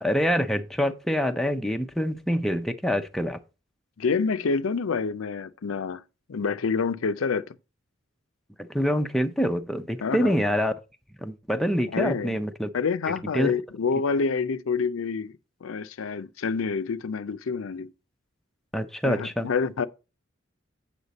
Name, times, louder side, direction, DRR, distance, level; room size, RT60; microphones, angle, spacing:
voice 1, 0.0-3.4 8.6-10.7 11.2-12.7 13.3-13.6 18.7-19.5, equal, ahead, 0.5 m, -26 dB
voice 2, 4.0-6.0 6.3-7.5 10.0-10.4 11.9-12.4 12.7-15.3 15.6-17.9 19.0-19.9, left 5 dB, 85° left, 0.5 m, -27 dB
8.1 x 5.8 x 4.0 m
head